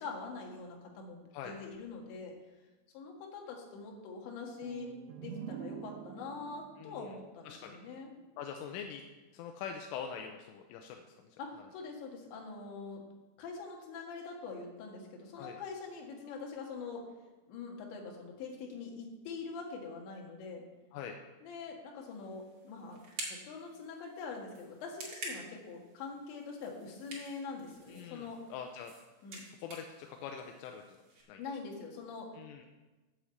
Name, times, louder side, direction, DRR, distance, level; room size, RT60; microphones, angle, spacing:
voice 1, 0.0-2.3 2.9-4.9 5.2-8.1 11.4-13.0 13.4-17.0 17.5-20.6 21.4-23.0 23.3-28.4 29.2-29.5 31.4-32.3, left 4 dB, 65° left, 0 dB, 3.7 m, -44 dB
sound 1, 4.6-8.3, right 8 dB, 90° right, 2.7 m, -47 dB
voice 2, 6.8-7.1 7.5-7.8 8.4-9.0 9.3-11.4 15.4-15.6 20.9-21.2 27.9-28.9 29.5-31.0 31.3-31.4 32.4-32.6, left 7 dB, 85° left, 3 dB, 3.1 m, -44 dB
sound 2, 22.0-31.2, right 2 dB, 45° right, 1.8 m, -49 dB
8.3 x 7.2 x 7.7 m, 1.1 s
omnidirectional pair, 5.9 m